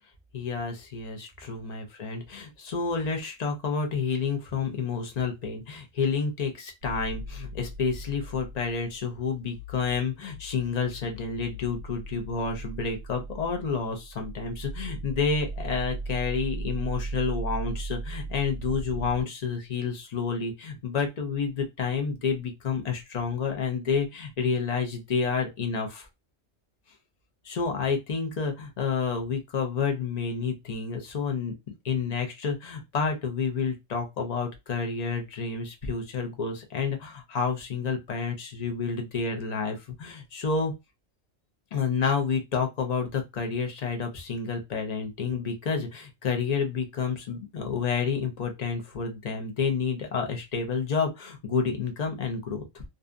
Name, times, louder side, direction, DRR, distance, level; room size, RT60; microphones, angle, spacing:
voice 1, 0.3-26.1 27.4-31.5 31.8-40.7 41.7-52.8, left 5 dB, 45° left, 0.5 m, -29 dB
sound 1, 6.8-19.2, right 2 dB, 65° right, 0.8 m, -37 dB
2.7 x 2.3 x 2.4 m
omnidirectional pair, 1.3 m